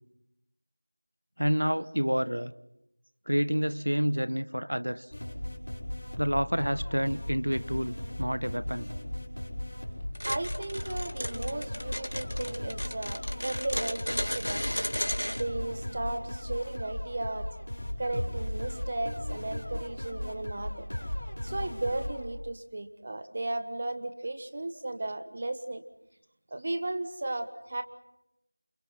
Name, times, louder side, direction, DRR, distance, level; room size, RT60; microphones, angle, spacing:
voice 1, 1.4-2.5 3.3-5.1 6.2-8.9, equal, 90° right, 14 dB, 1.3 m, -28 dB
sound 1, 5.1-22.3, left 1 dB, 40° left, 5.2 m, -37 dB
voice 2, 10.0-14.7 15.1-17.5 18.0-20.9 21.4-25.8 26.5-27.8, right 2 dB, 20° right, 8 dB, 1.2 m, -35 dB
sound 2, 10.1-15.4, equal, 65° left, 2.5 m, -34 dB
29.0 x 29.0 x 5.8 m, 0.84 s
figure-of-eight pair, 175°, 0 cm